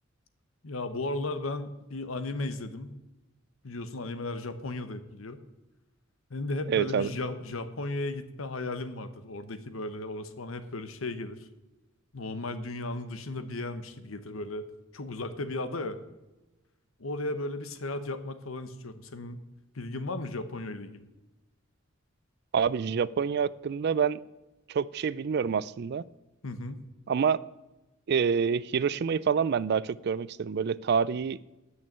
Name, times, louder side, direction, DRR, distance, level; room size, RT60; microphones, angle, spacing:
voice 1, 0.6-3.0 3.6-5.4 6.3-11.5 12.1-14.7 14.9-16.0 17.0-19.4 19.7-21.1 26.4-26.8, left 2 dB, 85° left, 11 dB, 1.0 m, -35 dB
voice 2, 6.7-7.1 22.5-24.2 24.7-26.0 27.1-27.4 28.1-31.4, right 6 dB, 55° right, 20 dB, 0.4 m, -27 dB
9.1 x 6.4 x 8.6 m, 1.0 s
head